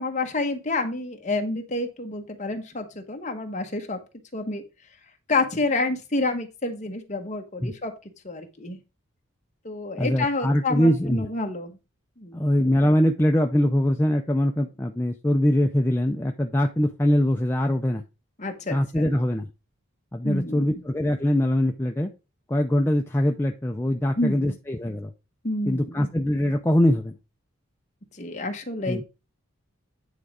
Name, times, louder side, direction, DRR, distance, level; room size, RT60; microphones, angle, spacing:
voice 1, 0.0-4.0 4.3-4.6 5.3-7.9 8.2-8.8 9.6-11.7 12.2-12.4 18.4-19.1 20.2-20.8 24.2-24.6 25.4-26.1 28.1-29.0, left 2 dB, 35° left, 4 dB, 1.1 m, -29 dB
voice 2, 10.0-11.3 12.3-18.0 18.7-19.5 20.1-22.1 22.5-25.1 25.7-27.1 28.9-29.0, left 1 dB, 10° left, 3 dB, 0.4 m, -22 dB
9.3 x 3.6 x 4.8 m, 0.28 s
head